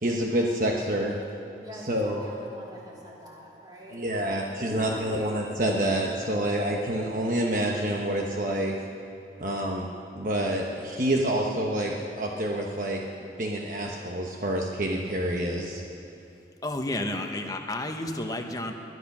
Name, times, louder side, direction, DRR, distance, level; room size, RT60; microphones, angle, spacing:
voice 1, 0.0-1.2 1.7-2.2 3.9-8.7 9.4-9.9 10.1-15.8, right 1 dB, 45° right, 0 dB, 1.1 m, -28 dB
voice 2, 1.6-5.3, equal, 25° right, -5 dB, 3.2 m, -43 dB
voice 3, 16.6-18.7, left 1 dB, 20° left, 4 dB, 1.0 m, -31 dB
20.5 x 11.0 x 6.1 m, 2.8 s
head